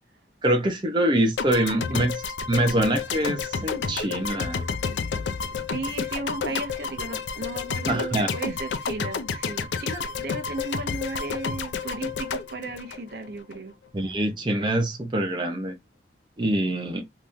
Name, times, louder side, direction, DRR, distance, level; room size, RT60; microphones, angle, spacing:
voice 1, 0.4-2.1 2.5-4.6 7.9-8.3 13.9-15.7 16.4-17.0, right 1 dB, 25° right, 0.7 m, -24 dB
sound 1, 1.4-13.6, left 5 dB, 90° left, 0.5 m, -30 dB
voice 2, 5.7-13.7, right 2 dB, 60° right, 0.8 m, -35 dB
3.5 x 3.0 x 2.5 m
head